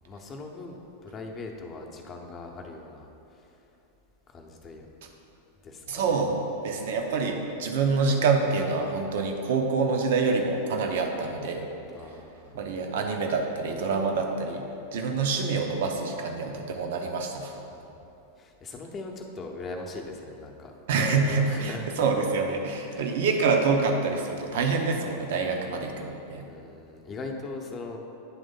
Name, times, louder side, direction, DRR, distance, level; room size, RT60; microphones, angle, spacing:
voice 1, 0.1-3.1 4.3-4.9 5.6-6.2 11.9-12.7 17.7-17.9 18.4-20.7 21.4-21.9 22.8-23.2 26.5-28.0, left 3 dB, 25° left, 1 dB, 0.8 m, -40 dB
voice 2, 5.9-6.4 6.6-11.7 12.5-14.7 14.9-17.5 20.9-26.5, right 4 dB, 55° right, 3 dB, 0.8 m, -26 dB
9.7 x 3.5 x 5.2 m, 2.9 s
figure-of-eight pair, 90°, 0 cm